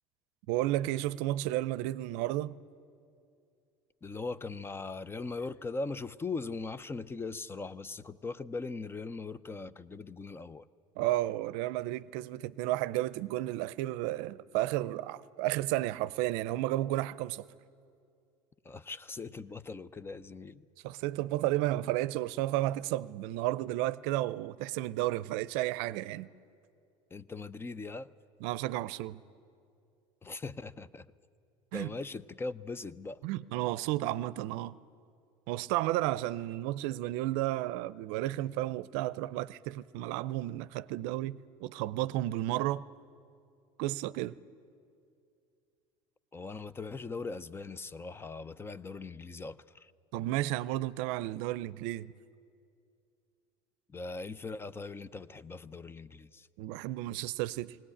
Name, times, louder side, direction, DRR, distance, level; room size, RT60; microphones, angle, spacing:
voice 1, 0.5-2.5 11.0-17.5 20.8-26.3 28.4-29.2 31.7-31.9 33.2-34.8 35.5-42.8 43.8-44.4 50.1-52.1 56.6-57.8, right 16 dB, 80° right, 0.5 m, -32 dB
voice 2, 4.0-10.7 18.6-20.6 27.1-28.1 30.2-31.1 31.7-33.2 46.3-49.9 53.9-56.5, left 3 dB, 20° left, 0.5 m, -40 dB
20.0 x 18.0 x 10.0 m
supercardioid pair, 105°, 12 cm